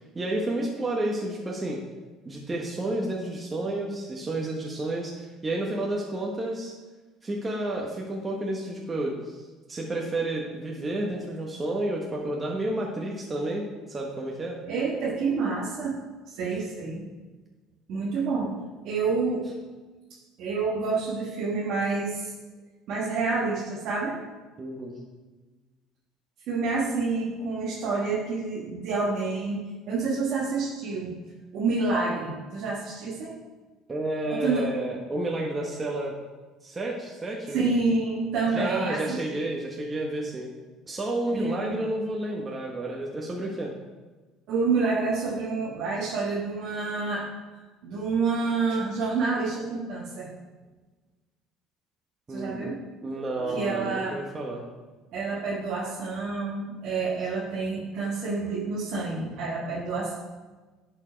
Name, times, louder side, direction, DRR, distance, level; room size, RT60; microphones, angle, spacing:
voice 1, 0.1-1.8 2.2-6.7 7.2-9.4 9.7-14.6 24.6-25.0 33.9-36.2 36.6-37.6 38.5-40.5 40.9-43.7 52.3-52.7 53.0-54.7, right 1 dB, 25° right, -1 dB, 1.2 m, -31 dB
voice 2, 14.7-16.0 16.3-17.0 17.9-18.5 18.8-19.5 20.4-22.3 22.9-24.2 26.5-29.6 29.9-31.1 31.5-33.3 34.3-34.7 37.5-39.5 41.3-41.8 44.5-47.3 47.8-50.3 52.3-52.8 53.4-54.2 55.1-60.1, right 4 dB, 65° right, -5 dB, 1.4 m, -28 dB
11.0 x 4.6 x 4.5 m, 1.3 s
supercardioid pair, 85°, 0 cm